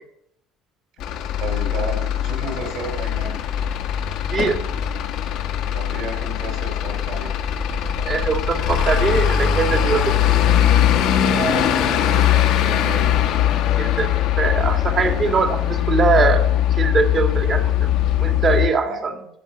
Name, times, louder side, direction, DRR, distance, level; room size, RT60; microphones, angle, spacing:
Truck / Idling, 1.0-18.7, left 10 dB, 70° left, 1.3 m, -20 dB
voice 1, 1.4-3.4 5.7-7.3 11.2-13.1 18.8-19.0, right 3 dB, 65° right, 2 dB, 5.3 m, -32 dB
voice 2, 8.0-10.1 13.8-14.1 14.4-16.4 16.7-17.9 18.2-19.1, right 5 dB, 35° right, 6 dB, 1.9 m, -21 dB
15.0 x 5.5 x 6.2 m, 0.75 s
cardioid pair, 110°, 0 cm